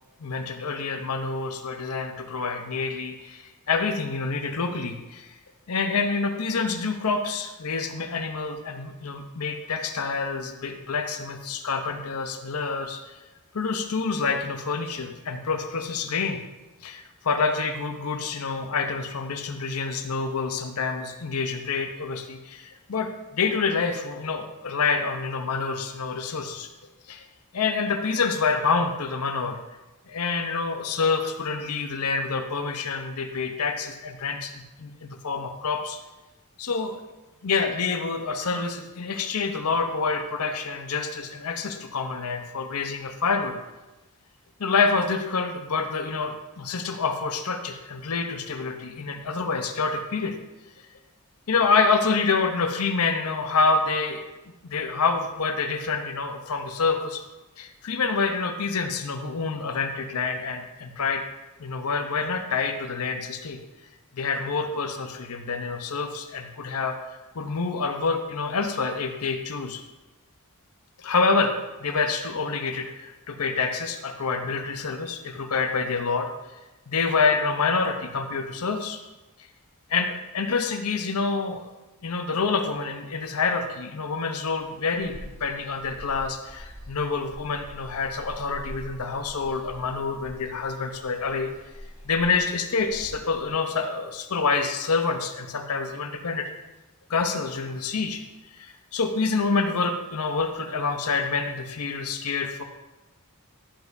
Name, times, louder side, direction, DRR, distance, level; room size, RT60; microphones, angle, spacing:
voice 1, 0.2-5.3 5.7-13.2 13.5-16.4 16.8-26.7 27.1-27.3 27.5-29.6 30.1-36.0 36.6-37.0 37.4-43.6 44.6-50.4 51.5-54.3 54.6-57.2 57.6-61.3 61.6-63.6 64.1-69.8 71.0-71.5 71.8-76.3 76.9-79.0 79.9-81.7 82.0-91.5 92.0-96.5 97.1-98.2 98.5-102.6, left 4 dB, 80° left, 6 dB, 0.7 m, -27 dB
sound 1, 84.5-93.5, equal, 10° right, 2.8 m, -45 dB
11.5 x 8.2 x 2.6 m, 1.1 s
head